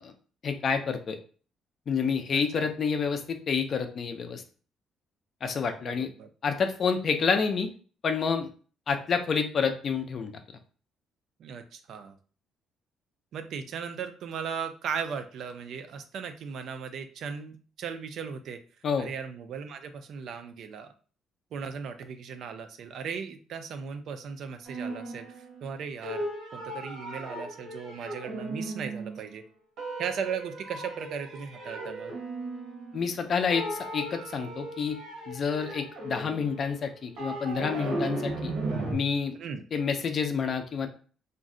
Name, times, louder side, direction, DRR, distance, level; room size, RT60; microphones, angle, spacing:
voice 1, 0.4-1.2 1.9-4.4 5.4-6.1 6.4-7.7 8.0-8.5 8.9-10.3 18.8-19.1 32.9-35.0 35.3-38.5 38.9-39.4 39.7-40.9, left 5 dB, 35° left, 7 dB, 0.4 m, -28 dB
voice 2, 2.3-2.7 5.8-6.3 11.4-12.2 13.3-18.6 19.0-20.9 21.5-26.3 26.5-29.4 30.0-32.1 39.4-39.6, right 6 dB, 55° right, 8 dB, 0.3 m, -37 dB
sound 1, 24.7-25.7 26.0-29.3 29.8-33.2 33.5-38.9, right 2 dB, 75° right, 0.8 m, -36 dB
2.5 x 2.1 x 3.6 m, 0.41 s
cardioid pair, 170°, 0 cm